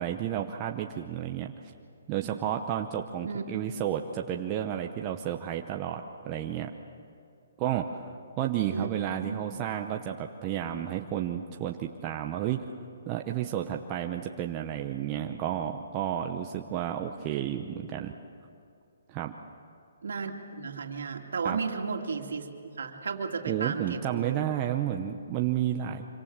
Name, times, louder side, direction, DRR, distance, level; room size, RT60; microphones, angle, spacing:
voice 1, 0.0-1.7 2.1-6.7 7.6-12.6 13.1-18.1 19.1-19.3 21.4-21.6 23.5-26.1, right 10 dB, 20° right, 3 dB, 0.8 m, -31 dB
voice 2, 20.0-22.5 22.8-24.4, right 5 dB, 80° right, 2 dB, 2.6 m, -34 dB
26.0 x 25.0 x 7.4 m, 2.4 s
hypercardioid pair, 165°, 0 cm